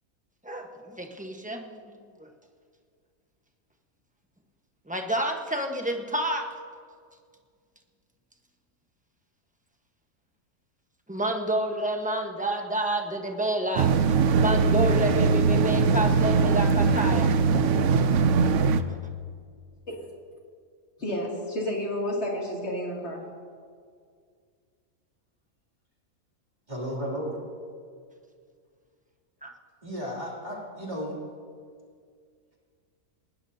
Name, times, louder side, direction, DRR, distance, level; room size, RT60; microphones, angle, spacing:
voice 1, 0.4-1.8 2.2-2.3 4.9-6.5 11.1-13.9 14.3-17.3 29.4-29.5, right 1 dB, 5° right, 2 dB, 1.1 m, -29 dB
sound 1, 13.8-18.8, right 5 dB, 65° right, 0.9 m, -21 dB
voice 2, 21.0-23.2, equal, 50° left, -3 dB, 3.0 m, -31 dB
voice 3, 26.7-27.4 29.8-31.1, equal, 30° right, -6 dB, 3.2 m, -33 dB
20.5 x 19.0 x 2.8 m, 2.1 s
omnidirectional pair, 1.5 m